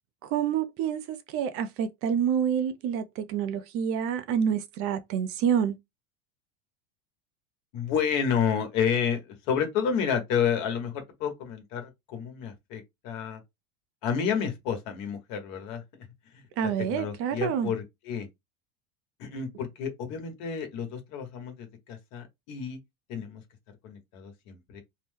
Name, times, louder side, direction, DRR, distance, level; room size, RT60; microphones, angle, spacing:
voice 1, 0.2-5.7 16.6-17.7, right 8 dB, 45° right, 0.5 m, -28 dB
voice 2, 7.7-13.4 14.0-15.8 16.3-18.3 19.2-22.8 23.1-23.4 23.8-24.8, left 7 dB, 60° left, 1.2 m, -30 dB
2.7 x 2.1 x 3.4 m
supercardioid pair, 125°, 31 cm